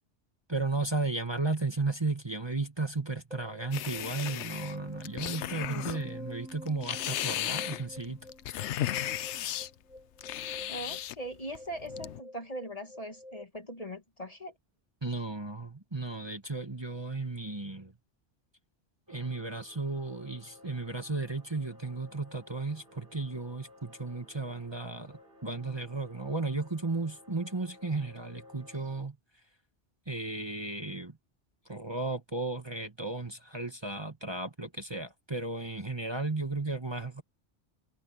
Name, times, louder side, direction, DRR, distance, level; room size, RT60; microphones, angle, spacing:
voice 1, 0.5-8.2 8.7-9.0 15.0-17.9 19.1-29.2 30.1-31.2 31.7-37.2, right 3 dB, 20° right, 1.6 m, -34 dB
sound 1, 3.3-13.4, left 1 dB, 5° right, 2.8 m, -48 dB
sound 2, 3.7-6.0 6.5-9.7 10.2-11.1 11.5-12.2, left 12 dB, 75° left, 0.9 m, -35 dB
voice 2, 10.7-14.5, right 1 dB, 30° left, 1.9 m, -40 dB
sound 3, 19.1-29.0, left 1 dB, 50° right, 7.3 m, -56 dB
omnidirectional pair, 1.2 m